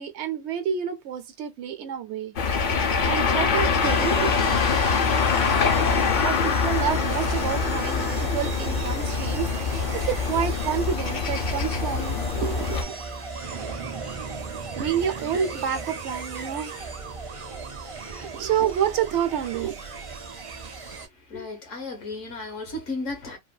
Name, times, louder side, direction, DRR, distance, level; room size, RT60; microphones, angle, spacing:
voice 1, 0.0-2.3 3.0-4.3 6.2-12.9 14.8-16.7 18.0-19.8, right 9 dB, 70° right, 0.8 m, -29 dB
sound 1, 2.4-12.8, left 5 dB, 55° left, 0.6 m, -24 dB
sound 2, 3.8-21.1, right 4 dB, 40° right, 0.5 m, -36 dB
voice 2, 21.3-23.4, left 2 dB, 75° left, 1.5 m, -34 dB
3.3 x 2.2 x 2.3 m
omnidirectional pair, 1.3 m